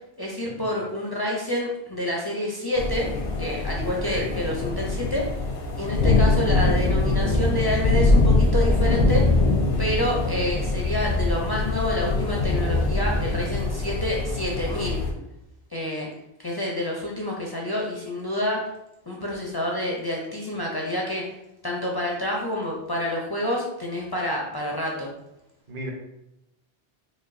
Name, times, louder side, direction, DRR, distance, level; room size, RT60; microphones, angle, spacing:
voice 1, 0.2-3.1 3.4-5.3 5.8-9.3 9.8-15.0 15.7-16.1 16.4-18.7 19.1-21.2 21.6-25.1, left 1 dB, 35° left, -3 dB, 0.3 m, -28 dB
sound 1, 2.8-15.1, left 2 dB, 85° left, 1.0 m, -23 dB
voice 2, 3.8-4.3 25.7-25.9, right 2 dB, 45° right, -1 dB, 0.8 m, -34 dB
5.0 x 2.3 x 2.6 m, 0.87 s
omnidirectional pair, 1.1 m